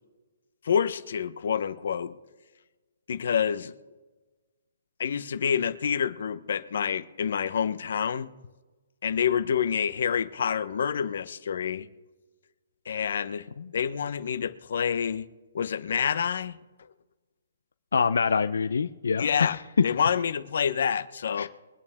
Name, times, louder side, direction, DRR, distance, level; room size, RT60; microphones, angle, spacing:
voice 1, 0.6-2.1 3.1-3.7 5.0-8.3 9.0-11.9 12.8-13.5 13.7-15.3 15.5-16.6 19.2-19.6 19.8-21.5, left 7 dB, 60° left, 11 dB, 1.0 m, -27 dB
voice 2, 17.9-19.8 21.4-21.5, left 5 dB, 85° left, 10 dB, 0.6 m, -25 dB
23.5 x 9.1 x 3.6 m, 1.2 s
hypercardioid pair, 170°, 0 cm